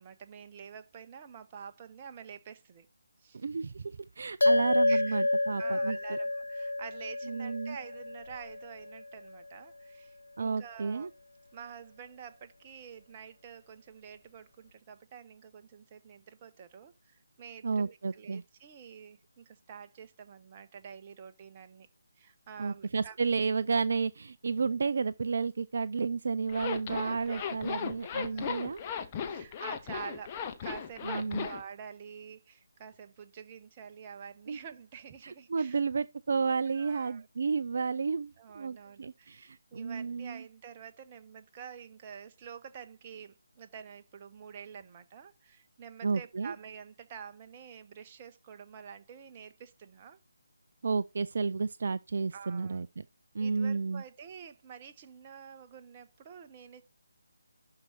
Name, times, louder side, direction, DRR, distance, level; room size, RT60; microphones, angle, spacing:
voice 1, 0.0-2.9 3.2-3.4 4.9-5.3 5.6-11.1 11.5-21.9 22.2-23.2 26.9-27.6 28.3-28.8 29.3-35.8 36.7-37.3 38.4-50.2 52.3-52.8 53.4-56.8, right 7 dB, 25° right, 0.9 m, -48 dB
voice 2, 3.4-3.8 4.2-6.2 7.3-7.8 10.4-11.1 17.6-18.4 22.6-28.8 31.1-31.5 34.5-34.6 35.2-40.4 46.0-46.5 50.8-53.0 53.3-54.0, right 4 dB, 45° right, 0.4 m, -32 dB
sound 1, 4.4-9.1, left 2 dB, 70° left, 0.8 m, -29 dB
Zipper (clothing), 26.5-31.6, left 7 dB, 20° left, 0.9 m, -36 dB
11.5 x 4.8 x 4.3 m
figure-of-eight pair, 150°, 0 cm